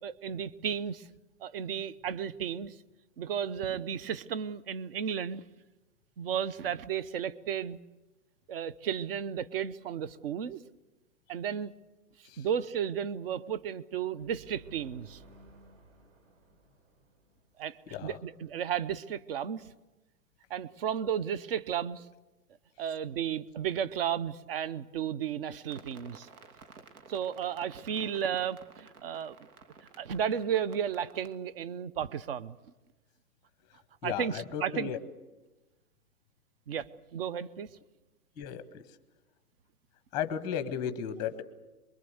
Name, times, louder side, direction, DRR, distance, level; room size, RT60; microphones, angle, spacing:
voice 1, 0.0-1.1 1.4-2.7 3.2-5.4 6.2-7.8 8.5-10.6 11.3-11.7 12.4-15.2 17.6-19.7 20.5-22.1 22.8-26.3 27.1-29.4 30.0-32.6 34.0-34.9 36.7-37.7, right 8 dB, 40° right, 18 dB, 0.8 m, -33 dB
sound 1, 14.2-17.9, right 3 dB, 60° right, 4.9 m, -56 dB
sound 2, 25.7-31.4, right 5 dB, 75° right, 2.6 m, -54 dB
voice 2, 34.0-35.0 38.4-38.8 40.1-41.4, left 8 dB, 10° left, 10 dB, 0.8 m, -35 dB
24.5 x 22.5 x 8.0 m, 1.1 s
hypercardioid pair, 160°, 44 cm